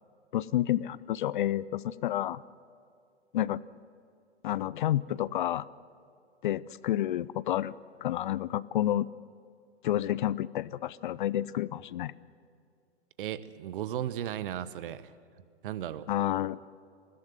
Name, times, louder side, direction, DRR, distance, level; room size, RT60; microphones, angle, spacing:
voice 1, 0.3-2.4 3.3-3.6 4.4-5.7 6.4-7.7 8.0-9.1 9.8-12.1 16.1-16.6, left 13 dB, 45° left, 20 dB, 0.5 m, -30 dB
voice 2, 13.2-15.1 15.6-16.1, right 11 dB, 50° right, 15 dB, 1.0 m, -35 dB
21.0 x 15.5 x 9.1 m, 2.3 s
figure-of-eight pair, 110°, 34 cm